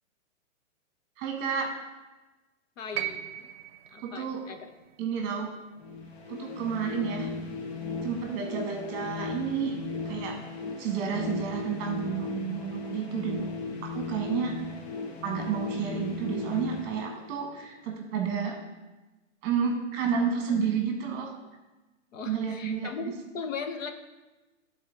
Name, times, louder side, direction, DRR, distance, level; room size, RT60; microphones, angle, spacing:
voice 1, 1.2-1.8 4.0-4.4 5.0-5.5 6.3-7.3 8.0-9.8 10.0-10.4 10.8-13.4 13.8-14.6 15.2-18.6 19.4-21.3 22.2-22.9, right 6 dB, 25° right, 2 dB, 1.3 m, -30 dB
voice 2, 2.8-3.5 3.9-4.7 22.1-23.9, left 5 dB, 75° left, 6 dB, 1.1 m, -38 dB
sound 1, 2.9-7.1 8.3-8.4, right 13 dB, 50° right, 0.7 m, -40 dB
sound 2, 5.8-17.7, left 4 dB, 55° left, 1.1 m, -37 dB
11.0 x 4.1 x 3.8 m, 1.1 s
hypercardioid pair, 145°, 39 cm